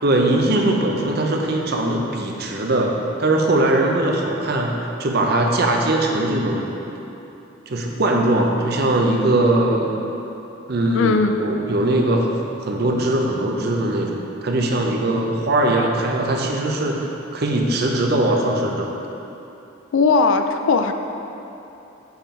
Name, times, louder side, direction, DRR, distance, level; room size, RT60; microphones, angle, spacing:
voice 1, 0.0-4.7 5.0-6.7 7.7-10.0 10.7-12.4 12.7-17.0 17.3-18.9, right 1 dB, 50° right, 1 dB, 0.6 m, -20 dB
voice 2, 10.9-11.4 19.9-20.9, left 4 dB, 70° left, 7 dB, 0.4 m, -18 dB
7.3 x 3.7 x 4.3 m, 2.9 s
head